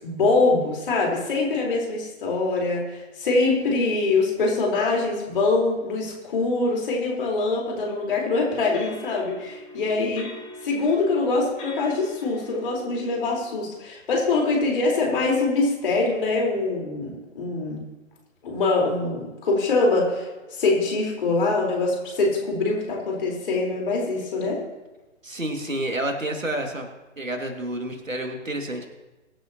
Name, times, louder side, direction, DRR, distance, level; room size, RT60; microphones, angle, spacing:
voice 1, 0.0-10.3 10.6-17.8 18.4-24.6, left 3 dB, 45° left, -1 dB, 4.5 m, -24 dB
sound 1, 8.1-13.5, equal, 15° left, 4.9 m, -41 dB
voice 2, 25.2-26.9 27.2-28.9, right 1 dB, 75° right, 4 dB, 2.5 m, -29 dB
23.0 x 9.2 x 3.0 m, 1.1 s
figure-of-eight pair, 135°, 39 cm